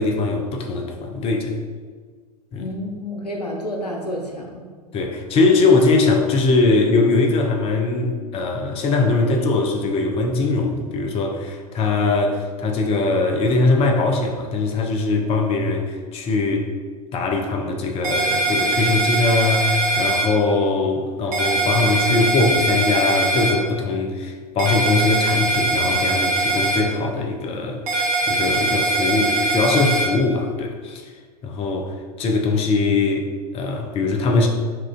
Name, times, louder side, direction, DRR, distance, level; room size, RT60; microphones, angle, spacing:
voice 1, 0.0-1.5 2.5-2.7 4.9-16.7 17.1-31.0 31.4-31.9 32.2-34.5, left 3 dB, 30° left, 2 dB, 0.6 m, -21 dB
voice 2, 2.6-4.6, left 1 dB, 85° left, 1 dB, 0.7 m, -29 dB
sound 1, 18.0-20.2 21.3-23.5 24.6-26.8 27.9-30.1, right 2 dB, 65° right, 1.2 m, -21 dB
7.4 x 2.5 x 2.4 m, 1.5 s
figure-of-eight pair, 85°, 20 cm